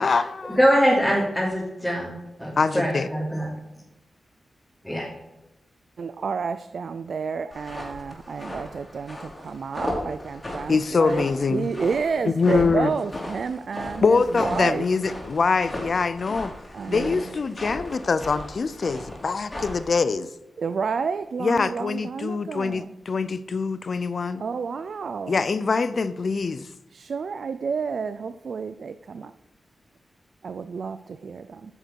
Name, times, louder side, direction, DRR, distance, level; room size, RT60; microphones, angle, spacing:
voice 1, 0.0-0.6 2.6-3.1 10.7-11.7 12.2-13.0 14.0-16.5 16.9-20.3 21.4-24.4 25.3-26.7, left 4 dB, 55° left, 0.6 m, -24 dB
voice 2, 0.6-3.5 4.8-5.1, equal, 5° left, 3.1 m, -23 dB
voice 3, 6.0-9.2 9.4-10.7 11.0-11.2 11.5-14.0 14.6-14.8 16.8-16.9 20.6-21.8 22.1-22.8 24.4-25.3 27.0-29.3 30.4-31.0 31.2-31.4, right 5 dB, 70° right, 0.4 m, -29 dB
sound 1, 7.5-19.9, left 1 dB, 20° left, 3.8 m, -36 dB
10.0 x 6.6 x 4.6 m
wide cardioid pair, 85°, 0 cm